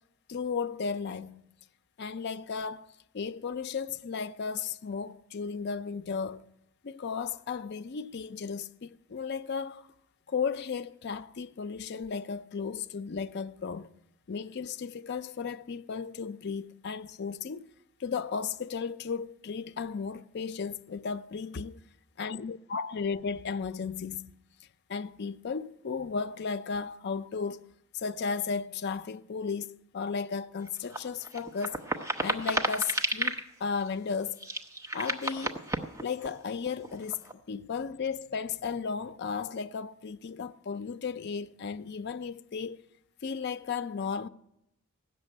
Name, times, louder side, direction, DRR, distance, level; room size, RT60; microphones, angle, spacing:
voice 1, 0.3-1.5 2.0-2.9 3.1-6.4 6.8-9.9 10.3-13.9 14.3-17.7 18.0-21.8 22.2-24.3 24.9-27.7 27.9-31.8 32.2-34.4 34.9-35.6 36.0-42.8 43.2-44.3, left 5 dB, 50° left, 0.4 m, -35 dB
sound 1, 30.7-33.4 33.8-33.9 34.4-36.3 36.7-37.3, right 2 dB, 15° right, 0.7 m, -32 dB
15.5 x 6.7 x 8.9 m
head